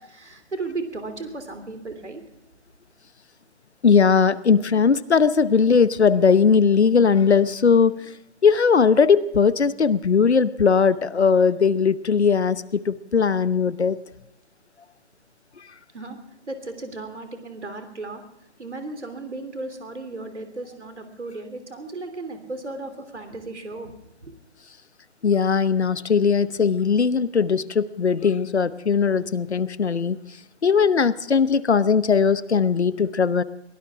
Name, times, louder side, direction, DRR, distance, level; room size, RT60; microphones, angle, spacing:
voice 1, 0.0-2.2 15.9-16.2 16.5-18.2 18.6-23.9 24.2-24.3, right 3 dB, 80° right, 8 dB, 3.4 m, -35 dB
voice 2, 3.8-8.1 8.4-14.0 25.2-30.2 30.6-33.4, left 6 dB, 70° left, 16 dB, 0.9 m, -19 dB
22.5 x 17.0 x 3.7 m, 0.88 s
figure-of-eight pair, 150°, 34 cm